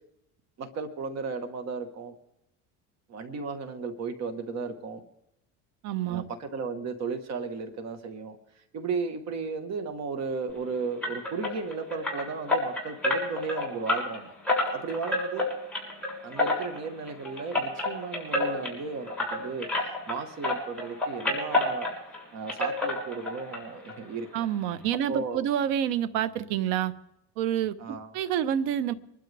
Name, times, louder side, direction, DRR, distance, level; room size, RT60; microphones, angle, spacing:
voice 1, 0.6-2.1 3.1-5.0 6.1-14.3 14.7-15.5 16.2-21.9 22.3-24.3 24.9-25.4 27.8-28.1, right 4 dB, 45° right, 8 dB, 1.5 m, -35 dB
voice 2, 5.8-6.2 24.3-26.9 27.4-28.9, right 10 dB, 80° right, 15 dB, 1.1 m, -28 dB
sound 1, 11.0-20.2 20.4-22.2 22.5-23.6 23.9-24.0 24.4-24.5 24.8-24.9, left 2 dB, 5° left, 6.6 m, -29 dB
25.0 x 12.5 x 3.5 m, 0.84 s
cardioid pair, 140°, 37 cm